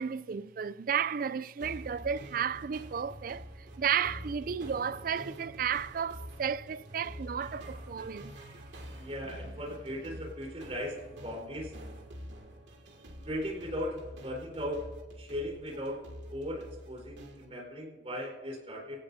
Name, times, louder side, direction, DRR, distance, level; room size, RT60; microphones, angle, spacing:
voice 1, 0.0-8.3, right 7 dB, 50° right, 0.4 m, -33 dB
sound 1, 1.6-17.5, equal, 75° right, 2.4 m, -47 dB
voice 2, 9.0-11.7 13.2-19.0, equal, 35° right, 4.3 m, -38 dB
21.0 x 17.0 x 2.8 m
head